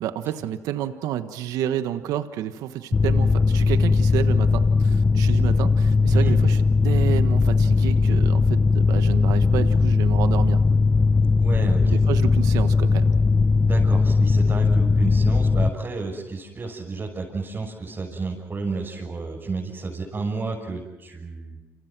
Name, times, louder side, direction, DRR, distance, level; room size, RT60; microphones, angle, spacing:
voice 1, 0.0-10.6 11.9-13.1, right 11 dB, 80° right, 10 dB, 1.4 m, -30 dB
Mechanical fan, 2.9-15.7, left 4 dB, 30° left, 1.3 m, -19 dB
voice 2, 11.4-12.0 13.6-21.6, right 4 dB, 35° right, -3 dB, 6.7 m, -31 dB
29.0 x 27.5 x 6.1 m, 1.1 s
cardioid pair, 80°, 6 cm